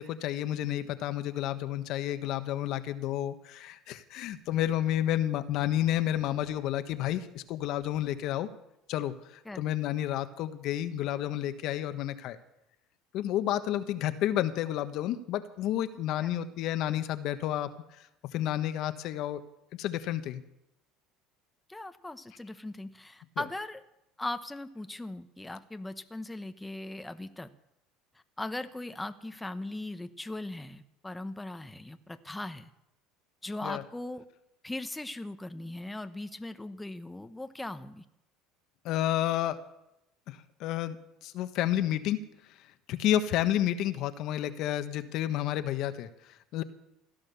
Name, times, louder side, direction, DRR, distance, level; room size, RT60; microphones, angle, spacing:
voice 1, 0.0-8.5 8.9-12.4 13.1-17.7 18.3-19.4 19.7-20.4 23.4-23.5 33.6-33.8 38.8-39.6 40.3-41.0 41.2-42.2 42.9-46.6, left 12 dB, 60° left, 10 dB, 1.2 m, -30 dB
voice 2, 21.7-23.8 24.2-27.5 28.4-32.7 33.4-34.3 34.6-38.0, left 2 dB, 10° left, 9 dB, 1.0 m, -39 dB
16.5 x 11.5 x 6.9 m, 0.86 s
supercardioid pair, 95°, 0 cm